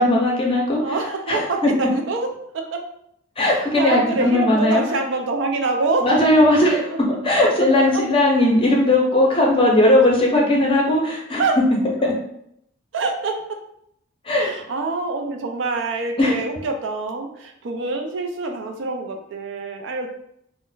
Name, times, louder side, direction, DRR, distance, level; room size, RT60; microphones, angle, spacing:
voice 1, 0.0-0.8 1.3-1.7 3.4-4.8 6.0-6.9 7.2-11.4 12.0-12.1 14.3-14.5 16.2-16.4, left 1 dB, 25° left, -2 dB, 0.6 m, -17 dB
voice 2, 0.8-2.3 2.5-2.8 3.4-6.1 7.4-7.5 11.4-11.6 12.9-13.3 14.4-20.1, right 3 dB, 60° right, 4 dB, 0.4 m, -25 dB
2.4 x 2.1 x 3.8 m, 0.73 s
head